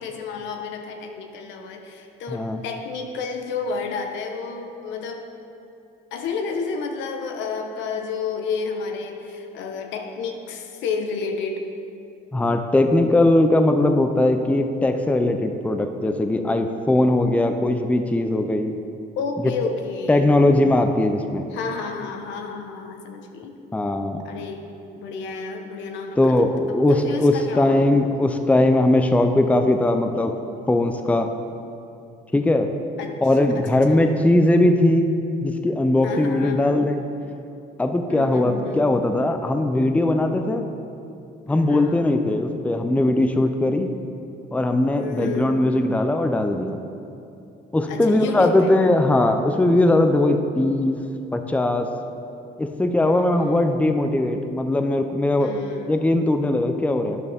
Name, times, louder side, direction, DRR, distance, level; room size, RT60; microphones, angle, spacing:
voice 1, 0.0-5.3 6.1-11.6 19.2-20.3 21.5-23.6 24.2-26.5 26.9-27.8 33.0-33.2 33.5-34.1 36.0-36.7 38.1-38.9 41.5-42.0 44.9-45.5 47.9-48.8 53.0-53.9 55.4-56.0, left 5 dB, 80° left, 4 dB, 1.1 m, -31 dB
voice 2, 2.3-2.6 12.3-18.8 20.1-21.5 23.7-24.3 26.2-30.3 30.7-31.3 32.3-32.7 33.2-35.1 35.4-37.0 37.8-40.6 41.5-43.9 44.5-46.8 47.7-51.0 51.3-51.9 52.6-55.5 55.9-57.2, left 1 dB, 5° left, 6 dB, 0.6 m, -20 dB
12.0 x 9.6 x 3.6 m, 2.7 s
cardioid pair, 105°, 19 cm